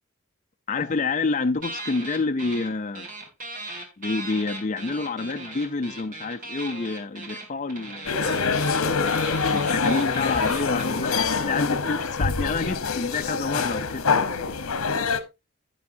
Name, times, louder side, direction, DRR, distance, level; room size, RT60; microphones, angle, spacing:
voice 1, 0.7-3.1 4.0-8.2 9.5-14.6, left 3 dB, 35° left, 0.5 m, -28 dB
sound 1, 1.6-2.7 2.9-11.2, right 2 dB, 40° right, 2.3 m, -38 dB
sound 2, 8.1-15.2, left 5 dB, 85° left, 1.0 m, -25 dB
10.5 x 9.6 x 2.7 m
head